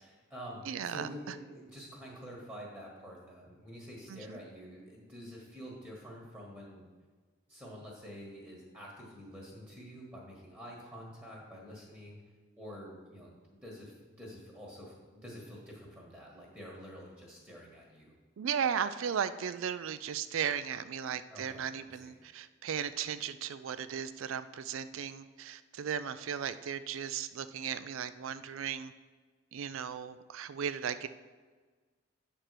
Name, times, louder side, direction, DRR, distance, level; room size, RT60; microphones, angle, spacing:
voice 1, 0.0-6.8 7.5-12.2 12.6-13.3 13.6-18.1 21.3-22.1, equal, 10° right, -3 dB, 1.5 m, -48 dB
voice 2, 0.6-1.3 4.1-4.4 18.4-28.9 29.5-31.1, right 8 dB, 80° right, 13 dB, 0.4 m, -36 dB
9.0 x 4.4 x 6.6 m, 1.4 s
head